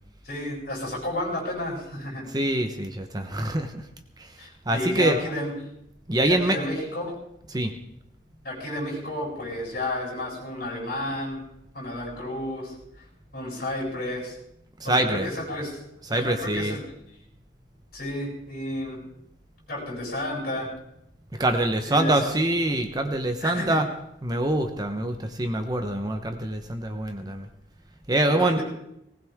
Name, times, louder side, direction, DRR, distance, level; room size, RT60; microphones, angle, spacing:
voice 1, 0.2-2.3 4.4-5.5 6.2-7.1 8.4-11.4 11.7-12.7 13.3-14.4 14.8-15.8 16.1-16.8 17.9-19.0 19.7-20.7 21.9-22.3 23.4-23.8 28.3-28.6, left 1 dB, 55° left, -3 dB, 7.9 m, -31 dB
voice 2, 2.2-3.8 4.7-5.2 6.1-6.6 7.5-7.7 14.9-15.3 16.1-16.8 21.4-23.8 24.2-27.5 28.1-28.6, right 1 dB, 20° right, 6 dB, 1.0 m, -24 dB
19.5 x 19.0 x 3.6 m, 0.79 s
head